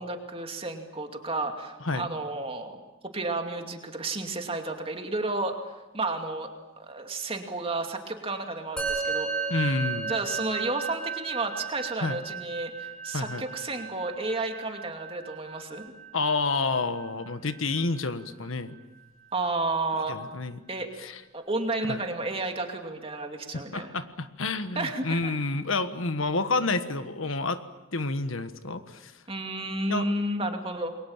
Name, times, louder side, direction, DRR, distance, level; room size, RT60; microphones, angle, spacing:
voice 1, 0.0-2.8 3.1-5.5 5.9-6.5 6.8-9.6 10.1-15.8 19.3-20.2 20.7-20.9 21.3-23.9 24.7-25.3 29.3-31.0, right 2 dB, 30° right, 4 dB, 2.5 m, -32 dB
Musical instrument, 8.8-18.3, right 5 dB, 5° left, 6.0 m, -35 dB
voice 2, 9.5-10.1 12.0-12.2 13.1-13.4 16.1-18.8 20.1-20.6 21.0-21.2 21.8-22.0 23.7-27.6 27.9-29.1 29.9-30.1, left 3 dB, 85° left, 11 dB, 1.4 m, -29 dB
28.5 x 22.5 x 7.4 m, 1.1 s
head